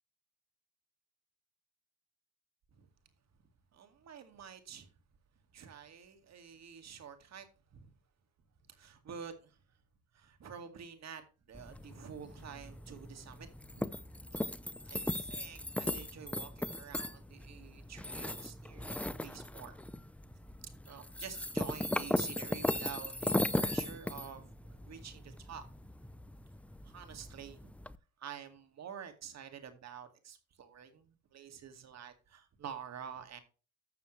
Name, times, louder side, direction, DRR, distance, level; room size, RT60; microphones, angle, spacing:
voice 1, 3.7-4.9 5.5-7.5 7.7-7.9 8.7-9.6 10.1-14.0 14.3-14.4 14.8-19.7 20.9-25.7 26.8-27.7 28.2-33.4, right 7 dB, 60° right, 2.2 m, -49 dB
sound 1, 11.5-28.0, left 1 dB, 5° left, 0.5 m, -38 dB
13.0 x 6.9 x 3.2 m
cardioid pair, 90°, 30 cm